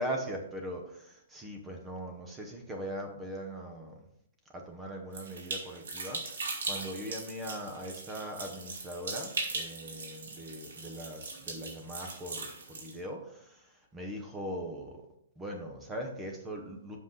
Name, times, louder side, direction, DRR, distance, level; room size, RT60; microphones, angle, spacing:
voice 1, 0.0-4.0 4.5-15.0 15.4-17.0, equal, 10° right, 3 dB, 0.9 m, -40 dB
sound 1, 5.1-13.0, right 3 dB, 90° right, 2.4 m, -39 dB
7.6 x 5.7 x 3.9 m, 0.75 s
hypercardioid pair, 180°, 0 cm